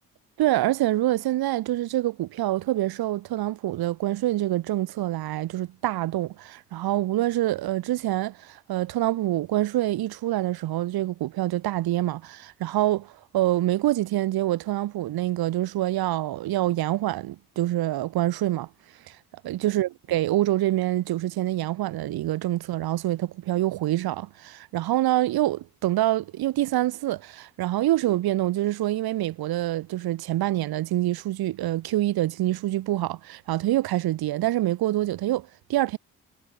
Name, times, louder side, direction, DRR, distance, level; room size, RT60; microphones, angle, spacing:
voice 1, 0.4-18.7 19.1-19.2 19.4-36.0, right 15 dB, 55° right, 1.5 m, -26 dB
figure-of-eight pair, 45°, 44 cm